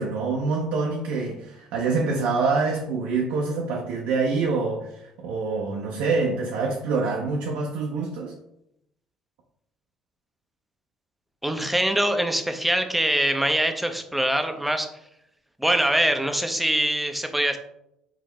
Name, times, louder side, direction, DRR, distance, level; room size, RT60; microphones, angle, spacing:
voice 1, 0.0-4.9 5.2-8.3, right 4 dB, 65° right, 0.6 m, -26 dB
voice 2, 11.4-14.9 15.6-17.6, right 1 dB, 5° right, 0.7 m, -23 dB
4.8 x 2.8 x 3.2 m
figure-of-eight pair, 50°, 2 cm